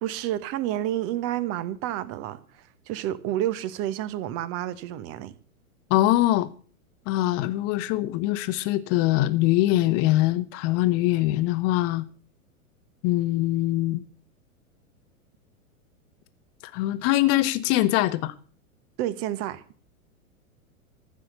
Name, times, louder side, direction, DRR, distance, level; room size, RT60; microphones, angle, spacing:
voice 1, 0.0-2.4 2.9-5.3 19.0-19.6, right 13 dB, 35° right, 1.2 m, -29 dB
voice 2, 5.9-6.5 7.1-12.0 13.0-14.0 16.7-18.3, left 16 dB, 35° left, 1.1 m, -23 dB
14.5 x 7.5 x 8.0 m
figure-of-eight pair, 100°, 42 cm